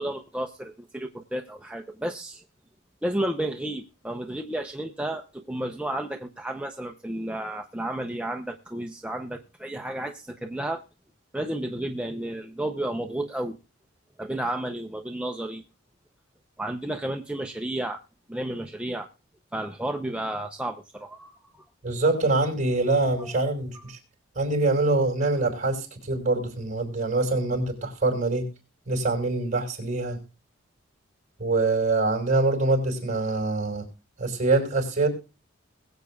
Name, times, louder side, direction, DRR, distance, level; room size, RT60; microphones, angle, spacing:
voice 1, 0.0-2.4 3.0-10.8 11.3-13.6 14.2-15.6 16.6-18.0 18.3-19.1 19.5-21.6 23.2-23.3, right 1 dB, 5° right, 3 dB, 0.6 m, -32 dB
voice 2, 21.8-24.0 24.3-28.4 28.9-30.2 31.4-33.8 34.2-35.1, right 2 dB, 35° right, 1 dB, 5.0 m, -24 dB
21.5 x 8.2 x 2.3 m, 0.31 s
head